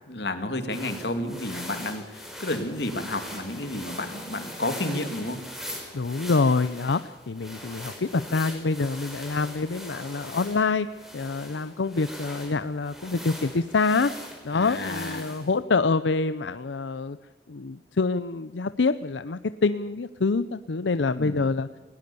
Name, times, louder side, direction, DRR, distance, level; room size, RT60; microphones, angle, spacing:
voice 1, 0.1-5.4 14.5-15.4 21.1-21.4, left 1 dB, 65° left, 8 dB, 2.4 m, -31 dB
sound 1, 0.7-15.5, equal, ahead, 5.0 m, -41 dB
voice 2, 5.9-7.0 7.3-10.9 11.1-14.1 14.4-17.2 17.5-21.7, left 4 dB, 90° left, 13 dB, 0.6 m, -26 dB
20.0 x 19.0 x 7.0 m, 1.3 s
head